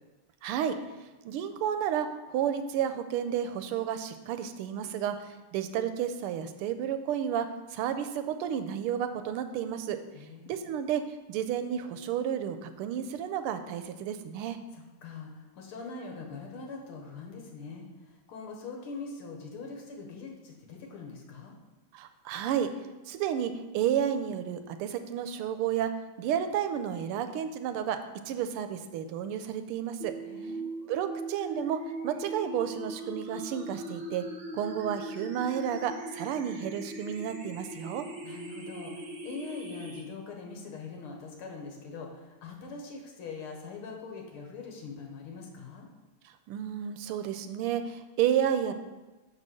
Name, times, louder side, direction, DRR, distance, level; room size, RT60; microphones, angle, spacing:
voice 1, 0.4-0.8 1.2-10.0 10.5-11.0 11.3-14.6 21.9-22.7 23.1-25.9 26.2-28.0 28.3-30.1 30.9-34.2 34.5-38.0 46.5-48.7, right 9 dB, 90° right, 9 dB, 1.5 m, -31 dB
voice 2, 10.1-10.5 14.7-21.5 30.3-30.7 38.2-45.9, left 4 dB, 85° left, 1 dB, 2.1 m, -43 dB
sound 1, 30.0-40.0, right 2 dB, 55° right, 1.8 m, -40 dB
5.4 x 5.3 x 6.3 m, 1.1 s
omnidirectional pair, 2.4 m